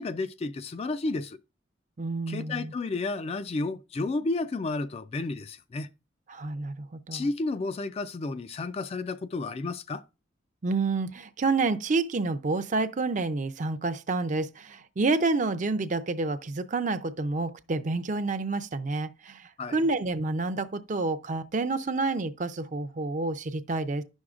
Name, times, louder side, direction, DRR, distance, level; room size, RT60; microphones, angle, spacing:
voice 1, 0.0-1.4 2.3-5.9 7.1-10.0 19.6-19.9, left 3 dB, 30° left, 0.3 m, -32 dB
voice 2, 2.0-2.7 6.3-7.3 10.6-24.0, right 3 dB, 40° right, 0.5 m, -29 dB
10.5 x 6.3 x 2.4 m
head